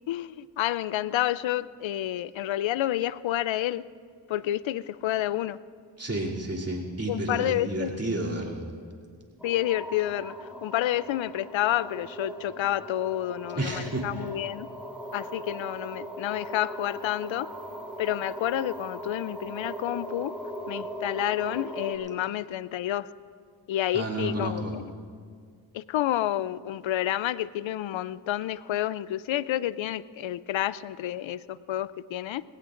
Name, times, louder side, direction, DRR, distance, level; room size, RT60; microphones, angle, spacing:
voice 1, 0.1-3.8 4.3-5.6 7.1-7.9 9.4-14.7 15.1-17.5 18.0-20.3 20.7-23.1 23.7-24.8 25.7-32.4, left 13 dB, 65° left, 18 dB, 0.6 m, -29 dB
voice 2, 6.0-8.6 13.5-14.3 23.9-24.7, right 1 dB, 30° right, -3 dB, 2.9 m, -31 dB
sound 1, 9.4-22.0, right 1 dB, ahead, 2.9 m, -39 dB
20.0 x 17.5 x 2.6 m, 2.1 s
cardioid pair, 55°, 50 cm